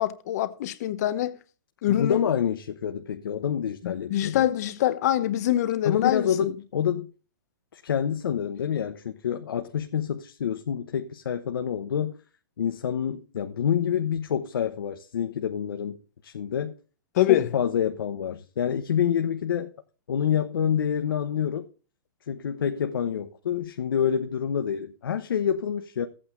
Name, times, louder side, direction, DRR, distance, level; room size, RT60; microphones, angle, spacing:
voice 1, 0.0-1.4 1.8-2.3 3.8-6.5 17.1-17.5, left 13 dB, 45° left, 0.9 m, -25 dB
voice 2, 1.9-4.5 5.8-7.1 7.7-12.2 12.6-16.0 16.2-16.8 17.3-19.7 20.1-21.7 22.3-26.1, left 8 dB, 80° left, 0.9 m, -27 dB
14.5 x 8.7 x 2.5 m
hypercardioid pair, 150°, 12 cm